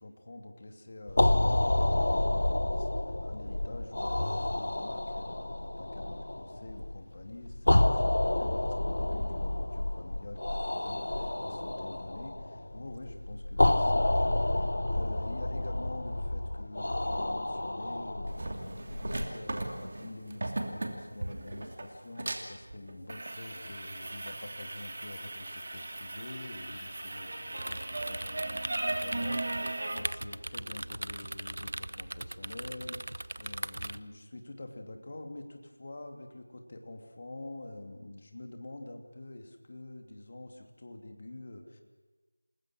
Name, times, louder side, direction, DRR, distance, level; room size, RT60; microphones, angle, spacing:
voice 1, 0.0-41.8, left 2 dB, 40° left, 4 dB, 2.6 m, -46 dB
sound 1, 1.1-19.3, left 1 dB, 70° left, 0.7 m, -29 dB
sound 2, 18.3-30.0, right 2 dB, 45° right, 2.7 m, -37 dB
sound 3, 27.6-34.0, right 1 dB, 65° right, 0.7 m, -39 dB
28.5 x 20.0 x 6.4 m, 1.3 s
figure-of-eight pair, 175°, 0 cm